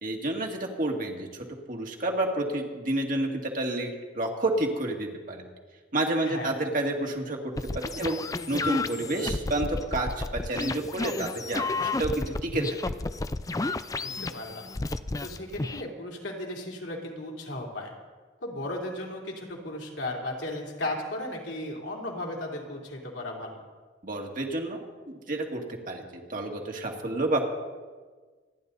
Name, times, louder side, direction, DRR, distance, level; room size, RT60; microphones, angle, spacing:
voice 1, 0.0-5.5 5.9-8.2 8.5-13.0 24.0-25.6 25.9-27.5, right 1 dB, 45° right, 1 dB, 2.1 m, -30 dB
voice 2, 6.2-6.5 14.0-14.7 15.2-17.9 18.4-23.6, left 1 dB, 70° left, -1 dB, 3.2 m, -35 dB
sound 1, 7.6-15.8, left 3 dB, 20° left, 0.4 m, -32 dB
26.5 x 11.0 x 4.1 m, 1.4 s
head